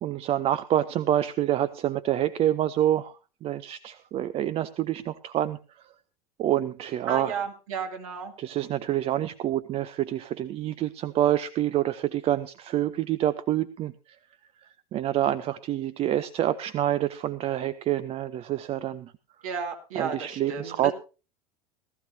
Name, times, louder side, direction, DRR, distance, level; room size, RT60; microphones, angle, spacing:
voice 1, 0.0-5.9 6.4-7.4 8.4-14.2 14.6-19.1 19.9-20.9, right 12 dB, 30° right, 15 dB, 0.5 m, -27 dB
voice 2, 7.1-8.3 19.4-20.9, right 6 dB, 60° right, 3 dB, 2.5 m, -33 dB
18.0 x 14.0 x 2.7 m, 0.33 s
figure-of-eight pair, 80°, 19 cm